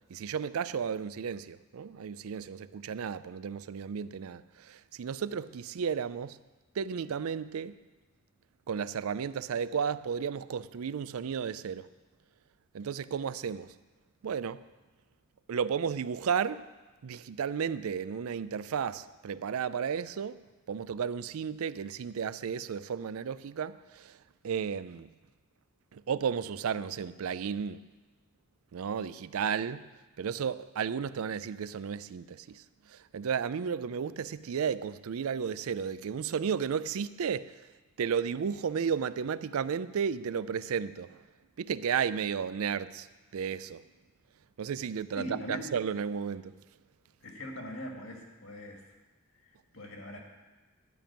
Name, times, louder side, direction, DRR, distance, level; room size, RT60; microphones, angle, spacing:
voice 1, 0.1-6.4 6.8-7.8 8.7-11.9 12.7-13.7 14.2-14.6 15.5-16.7 17.0-20.4 20.7-24.2 24.4-25.1 25.9-27.8 28.7-29.8 30.2-32.6 32.9-37.5 38.0-41.2 41.6-43.1 43.3-43.8 44.6-46.5, right 7 dB, 85° right, 0.4 m, -33 dB
voice 2, 45.2-45.7 47.2-48.8 49.4-50.2, equal, 65° left, 1.9 m, -41 dB
12.0 x 5.2 x 8.7 m
head